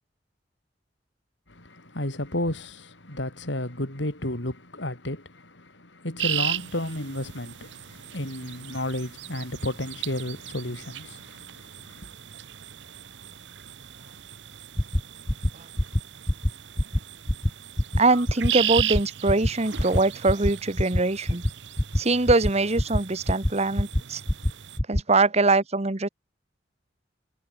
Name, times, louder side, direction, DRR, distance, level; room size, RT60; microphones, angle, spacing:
voice 1, 1.5-12.1, left 1 dB, 90° left, 5.7 m, -32 dB
sound 1, 6.2-24.8, right 11 dB, 80° right, 0.9 m, -36 dB
sound 2, 14.8-15.0 15.3-15.5 15.8-16.0 16.3-16.5 16.8-17.0 17.3-17.5 17.8-18.0 18.3-18.5 18.8-19.0 19.3-19.5 19.8-20.0 20.3-20.5 20.8-21.0 21.3-21.5 21.8-22.0 22.3-22.5 22.8-23.0 23.3-23.5 23.8-24.0 24.3-24.5 24.8-25.0, left 1 dB, 15° left, 1.1 m, -23 dB
voice 2, 18.0-21.4 21.9-24.2 24.9-26.1, right 3 dB, 35° right, 1.3 m, -23 dB
head